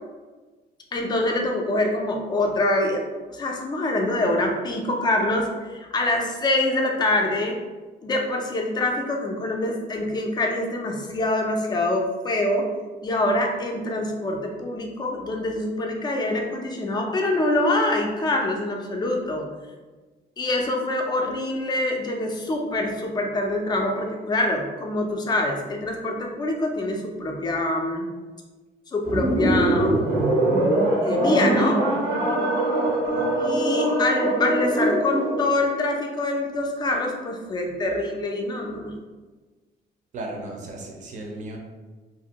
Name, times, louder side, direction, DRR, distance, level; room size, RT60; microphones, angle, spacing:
voice 1, 0.9-3.0 3.3-7.6 8.0-12.7 13.0-19.5 20.4-28.1 28.9-30.2 31.0-31.8 33.4-39.0, left 2 dB, 25° left, 1 dB, 0.4 m, -25 dB
sound 1, 29.0-35.5, right 1 dB, 90° right, 0.9 m, -22 dB
voice 2, 40.1-41.6, right 2 dB, 45° right, 1 dB, 0.5 m, -35 dB
2.8 x 2.5 x 2.8 m, 1.3 s
cardioid pair, 165°, 18 cm